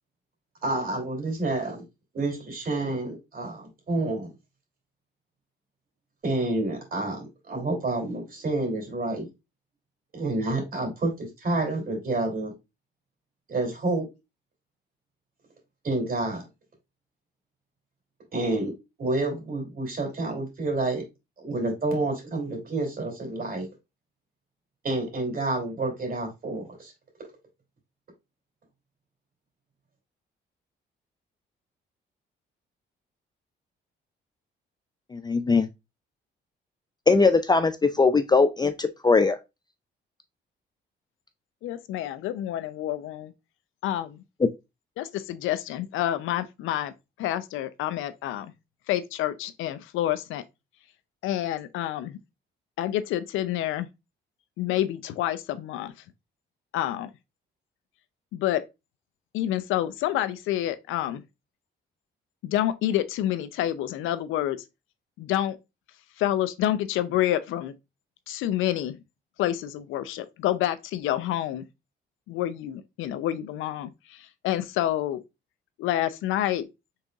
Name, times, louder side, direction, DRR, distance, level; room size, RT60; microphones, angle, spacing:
voice 1, 0.6-1.8 2.1-4.3 6.2-9.3 10.1-12.5 13.5-14.1 15.8-16.4 18.3-18.7 19.0-21.0 21.4-23.7 24.8-26.9, right 2 dB, 45° right, 3.0 m, -29 dB
voice 2, 35.1-35.7 37.1-39.4 44.4-44.5, left 4 dB, 20° left, 0.4 m, -20 dB
voice 3, 41.6-43.3 43.8-44.2 45.0-46.9 47.2-48.5 48.9-50.4 51.2-52.2 52.8-53.9 54.6-55.9 56.7-57.1 58.3-58.6 59.3-61.2 62.4-64.6 65.2-65.6 66.2-67.7 68.3-69.0 69.4-71.6 72.3-75.2 75.8-76.7, left 12 dB, 90° left, 0.5 m, -28 dB
5.5 x 3.8 x 2.3 m
cardioid pair, 90°, 20 cm